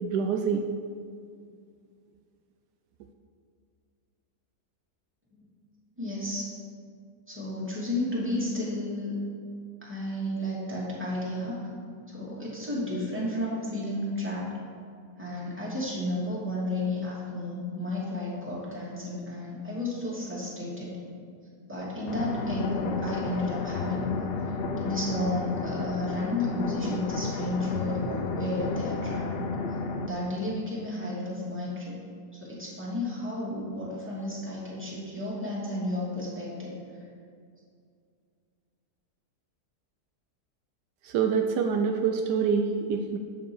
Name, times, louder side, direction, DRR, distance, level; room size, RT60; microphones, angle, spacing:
voice 1, 0.0-0.6 41.0-43.2, right 6 dB, 85° right, 4 dB, 1.2 m, -26 dB
voice 2, 6.0-6.5 7.3-9.2 9.8-11.6 12.1-14.4 15.2-21.0 21.7-24.1 24.8-29.5 30.0-32.0 32.3-36.7, left 1 dB, 5° right, -7 dB, 2.8 m, -32 dB
sound 1, 22.1-30.1, left 4 dB, 90° left, 0.5 m, -32 dB
11.0 x 8.0 x 4.7 m, 2.2 s
omnidirectional pair, 1.7 m